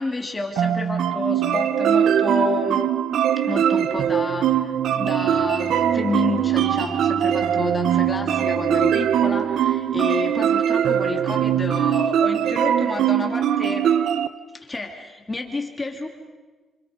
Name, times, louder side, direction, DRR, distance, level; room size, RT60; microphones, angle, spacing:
voice 1, 0.0-2.9 3.4-13.9 14.5-16.1, left 3 dB, 20° left, 2 dB, 3.2 m, -30 dB
sound 1, 0.6-14.3, right 9 dB, 80° right, 0.9 m, -21 dB
Bowed string instrument, 5.2-10.4, equal, 15° right, 1.3 m, -39 dB
30.0 x 28.0 x 5.3 m, 1.3 s
cardioid pair, 100°, 0 cm